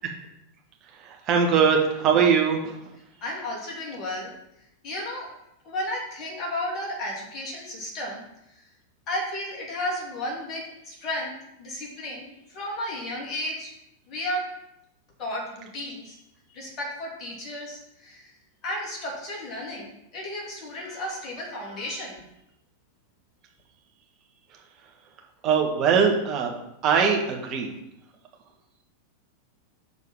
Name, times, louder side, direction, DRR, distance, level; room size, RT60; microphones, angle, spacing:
voice 1, 0.9-2.8 25.4-26.5 26.8-27.7, right 6 dB, 35° right, 1 dB, 1.6 m, -21 dB
voice 2, 3.2-4.3 4.8-8.2 8.5-8.7 9.1-11.3 11.6-13.7 14.1-14.5 15.2-16.2 16.5-18.3 18.6-22.2, left 1 dB, 35° left, -3 dB, 2.8 m, -33 dB
6.7 x 4.5 x 5.7 m, 0.83 s
figure-of-eight pair, 90°, 0 cm